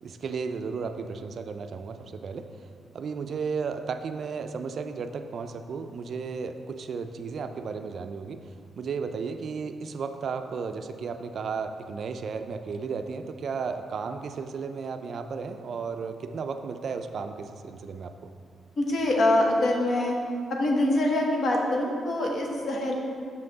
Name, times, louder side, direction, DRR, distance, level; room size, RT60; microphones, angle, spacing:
voice 1, 0.0-2.5 2.9-8.4 8.8-18.3, right 5 dB, 55° right, 8 dB, 0.3 m, -34 dB
voice 2, 18.8-20.1 20.5-22.9, left 1 dB, 50° left, 0 dB, 0.9 m, -24 dB
6.0 x 5.6 x 3.9 m, 2.2 s
cardioid pair, 125°, 0 cm